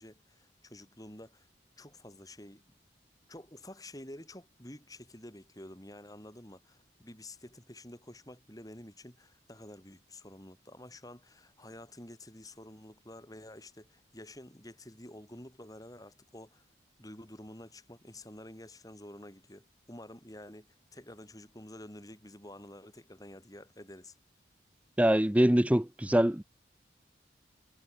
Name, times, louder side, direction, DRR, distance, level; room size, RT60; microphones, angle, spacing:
voice 1, 0.0-1.5 1.8-2.6 3.3-16.7 17.0-24.2, left 1 dB, 20° left, 4.8 m, -49 dB
voice 2, 25.0-26.4, right 1 dB, 5° right, 0.6 m, -24 dB
head